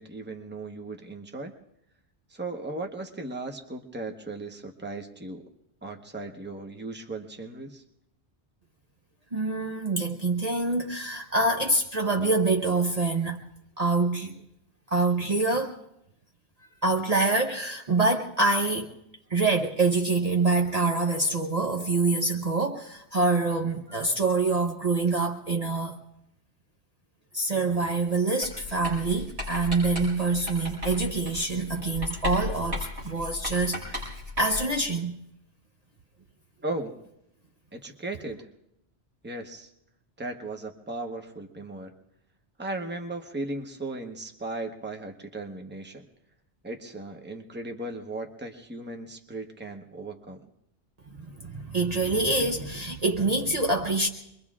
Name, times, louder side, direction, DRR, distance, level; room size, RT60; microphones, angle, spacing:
voice 1, 0.0-1.5 2.3-5.5 5.8-7.8 36.6-36.9 37.7-38.5 39.2-39.7 40.2-41.9 42.6-46.1 46.6-50.4, right 2 dB, 10° right, 4 dB, 1.0 m, -37 dB
voice 2, 9.3-13.4 13.8-14.3 14.9-15.8 16.8-18.9 19.3-26.0 27.3-34.0 34.4-35.2 51.4-54.1, right 3 dB, 40° right, 2 dB, 0.9 m, -25 dB
Writing, 28.4-34.8, left 2 dB, 75° right, 7.0 m, -36 dB
25.5 x 22.5 x 2.4 m, 0.81 s
omnidirectional pair, 1.1 m